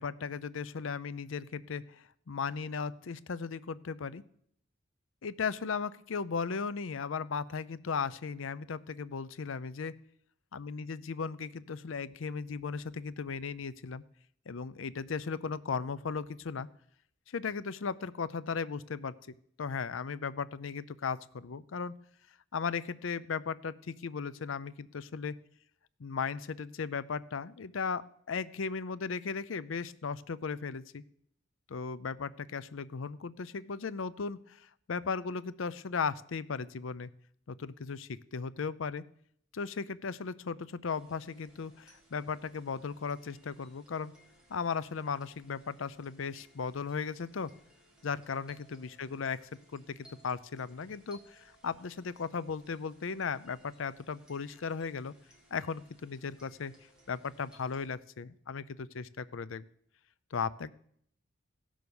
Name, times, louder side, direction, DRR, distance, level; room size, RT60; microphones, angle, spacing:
voice 1, 0.0-4.2 5.2-10.0 10.5-14.0 14.5-16.7 17.3-21.9 22.5-25.3 26.0-31.0 31.7-37.1 37.5-39.0 39.5-44.1 44.5-47.5 48.0-55.1 55.5-56.7 57.1-59.6 60.3-60.7, left 5 dB, 75° left, 16 dB, 0.5 m, -36 dB
sound 1, 40.9-57.9, right 1 dB, 5° right, 2.9 m, -63 dB
15.5 x 6.3 x 7.0 m, 0.67 s
head